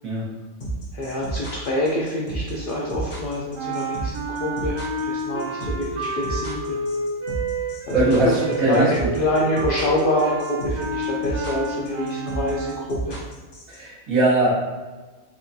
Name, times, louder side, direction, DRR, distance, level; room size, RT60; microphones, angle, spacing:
sound 1, 0.6-13.8, right 2 dB, 80° left, 1.6 m, -31 dB
voice 1, 0.9-4.1 4.4-6.8 7.9-13.2, left 1 dB, 60° left, -4 dB, 0.5 m, -26 dB
sound 2, 3.5-13.1, right 2 dB, 30° right, 0.6 m, -30 dB
voice 2, 7.9-8.9 13.7-14.5, right 2 dB, 85° right, -6 dB, 1.6 m, -20 dB
4.4 x 2.4 x 2.7 m, 1.3 s
omnidirectional pair, 1.4 m